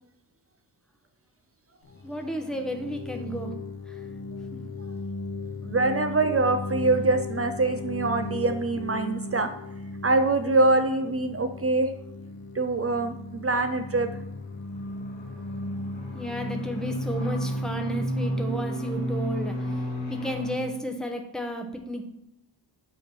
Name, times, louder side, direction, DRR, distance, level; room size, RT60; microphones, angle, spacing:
sound 1, 1.8-19.4, left 2 dB, 55° left, 0.9 m, -37 dB
voice 1, 2.0-4.1 4.5-4.6 16.1-22.0, right 1 dB, ahead, 4 dB, 0.8 m, -33 dB
voice 2, 5.6-9.5 10.0-11.9 12.5-14.1, right 2 dB, 35° right, 8 dB, 0.4 m, -24 dB
sound 2, 13.6-20.6, equal, 90° left, 1.7 m, -32 dB
7.7 x 3.0 x 5.4 m, 0.79 s
wide cardioid pair, 110°, 44 cm